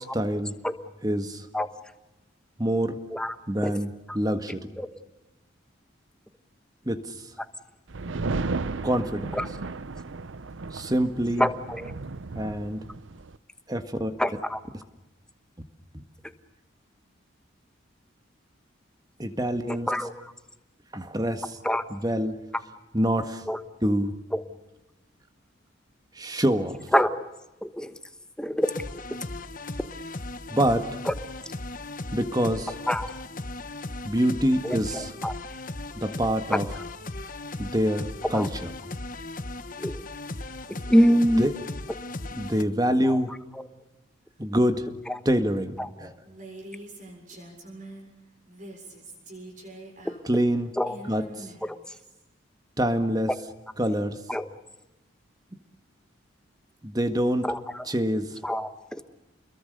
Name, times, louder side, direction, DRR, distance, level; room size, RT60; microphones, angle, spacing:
voice 1, 0.1-0.5 1.0-1.5 2.6-3.0 3.5-3.9 4.1-4.7 6.8-7.0 8.8-9.3 10.7-11.5 12.3-12.8 13.7-14.1 19.2-19.9 20.9-21.6 21.9-22.3 22.9-23.4 23.8-24.2 26.1-26.8 30.5-30.9 32.1-32.7 34.0-35.1 35.9-36.7 37.6-38.7 41.4-41.5 42.3-43.3 44.4-44.9 45.2-46.1 50.2-50.7 51.1-51.5 52.8-53.3 53.8-54.2 56.8-57.4 57.8-58.3, equal, 20° right, 8 dB, 1.7 m, -25 dB
sound 1, 7.9-13.4, right 3 dB, 75° right, 0.7 m, -34 dB
voice 2, 11.4-11.9 14.2-14.6 19.7-20.3 21.6-21.8 23.5-23.6 24.3-24.4 26.9-27.3 27.6-27.9 28.4-28.7 31.0-31.1 32.9-33.1 34.6-35.3 36.5-36.6 38.3-38.5 39.8-40.0 40.9-41.4 43.0-43.2 43.5-43.6 45.1-45.2 45.8-45.9 50.0-50.2 50.8-50.9 51.6-51.8 53.3-53.4 54.3-54.5 57.4-57.8 58.4-59.0, equal, 5° left, 10 dB, 1.2 m, -25 dB
sound 2, 28.6-42.6, left 2 dB, 45° left, 1.2 m, -37 dB
Female speech woman speaking, 46.2-48.1 48.5-52.2, right 1 dB, 40° right, 7.1 m, -44 dB
29.5 x 22.0 x 6.7 m, 1.0 s
head